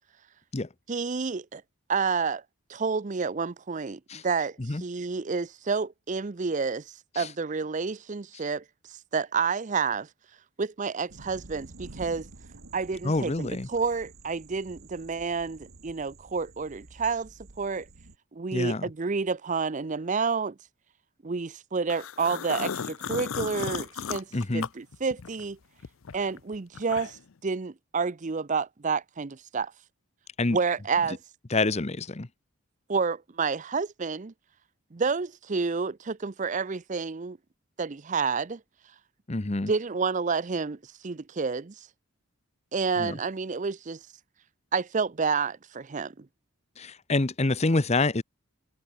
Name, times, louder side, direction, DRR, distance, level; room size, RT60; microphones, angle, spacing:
voice 1, 0.9-1.6 1.9-2.4 2.7-6.8 7.2-8.6 9.1-10.1 10.6-12.3 12.7-17.3 17.6-17.9 18.3-20.5 21.2-24.3 24.5-25.6 26.1-29.7 30.5-31.2 32.9-34.3 34.9-37.4 37.8-38.6 39.7-40.8 41.0-41.9 42.7-44.0 44.7-46.3, right 5 dB, 35° right, 0.6 m, -29 dB
sound 1, 11.1-18.2, right 2 dB, 80° right, 1.6 m, -49 dB
voice 2, 13.0-13.7 18.5-18.9 24.3-24.7 30.4-30.6 31.5-32.3 39.3-39.7 43.0-43.2 46.8-48.2, left 2 dB, 30° left, 0.9 m, -27 dB
sound 2, 21.9-25.5 25.8-27.3, left 6 dB, 75° left, 0.6 m, -35 dB
head